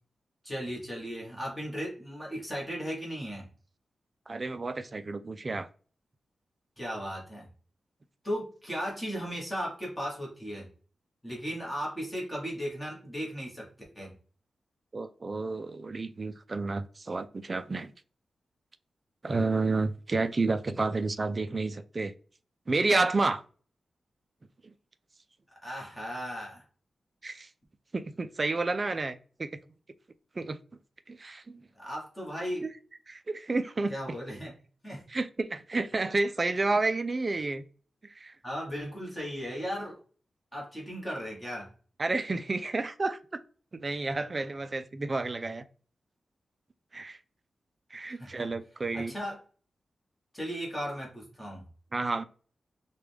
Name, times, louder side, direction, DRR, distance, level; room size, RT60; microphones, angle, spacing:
voice 1, 0.4-3.5 6.8-7.5 8.2-10.7 11.2-13.7 13.9-14.1 25.6-26.6 31.8-32.6 33.9-34.6 34.8-35.1 38.4-40.0 40.5-41.7 48.1-48.5 48.9-49.4 50.3-51.6, equal, 10° left, 1.3 m, -36 dB
voice 2, 4.3-5.7 14.9-17.9 19.2-22.1 22.7-23.4 24.6-24.7 27.2-27.5 27.9-29.6 30.4-30.6 31.1-31.6 32.6-32.7 33.1-33.9 35.1-37.6 38.0-38.3 42.0-43.4 43.7-45.6 46.9-47.2 47.9-49.1 51.9-52.2, right 3 dB, 35° right, 0.3 m, -30 dB
4.7 x 2.2 x 3.4 m
wide cardioid pair, 130°, 0 cm